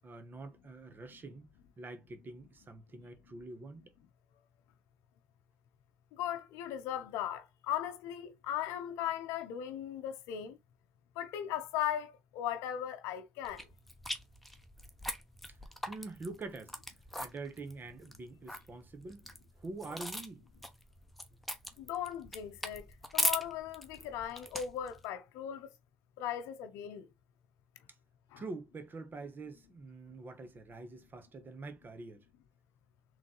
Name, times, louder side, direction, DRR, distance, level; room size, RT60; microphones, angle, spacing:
voice 1, 0.0-1.5 1.8-3.9 15.5-15.6 15.9-16.7 17.2-19.2 19.6-20.4 28.4-32.2, right 3 dB, 45° right, 1.1 m, -45 dB
voice 2, 6.2-10.6 11.2-13.6 21.8-22.8 23.1-25.7 26.2-27.1 28.3-28.4, left 10 dB, 85° left, 0.6 m, -38 dB
sound 1, 13.4-25.1, equal, ahead, 1.0 m, -40 dB
3.7 x 3.3 x 3.8 m
supercardioid pair, 60°, 5 cm